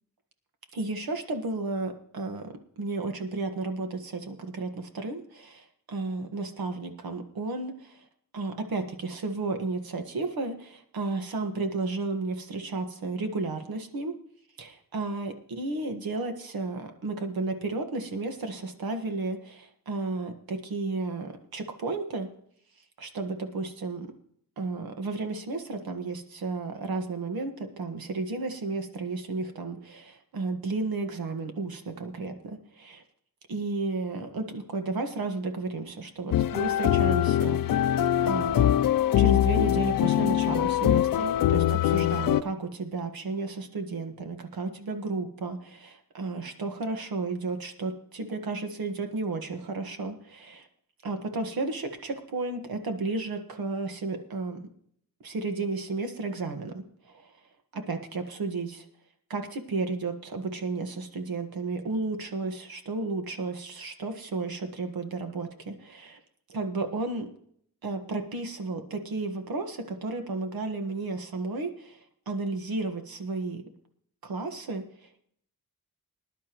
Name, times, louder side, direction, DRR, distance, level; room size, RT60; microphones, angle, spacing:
voice 1, 0.7-8.0 8.3-14.2 14.6-22.3 23.0-24.1 24.6-33.0 33.5-37.9 38.2-38.7 39.2-50.7 51.0-54.6 55.2-57.3 57.7-58.8 59.3-66.2 66.5-67.3 67.8-72.0 72.3-73.6 74.2-74.8, right 3 dB, 85° right, 6 dB, 1.6 m, -33 dB
sound 1, 36.3-42.4, left 12 dB, 70° left, 0.5 m, -23 dB
20.5 x 11.0 x 3.1 m, 0.66 s
wide cardioid pair, 110°, 35 cm